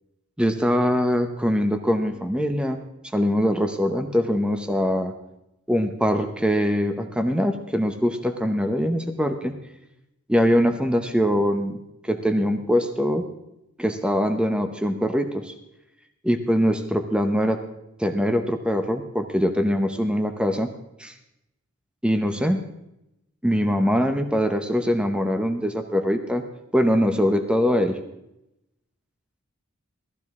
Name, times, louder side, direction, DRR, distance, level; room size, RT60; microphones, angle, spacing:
voice 1, 0.4-2.8 3.1-5.1 5.7-9.5 10.3-13.3 13.8-15.5 16.2-17.6 18.0-20.7 21.0-21.1 22.0-22.6 23.4-26.4 26.7-28.0, equal, 5° right, 7 dB, 0.7 m, -23 dB
17.5 x 13.5 x 3.6 m, 0.87 s
head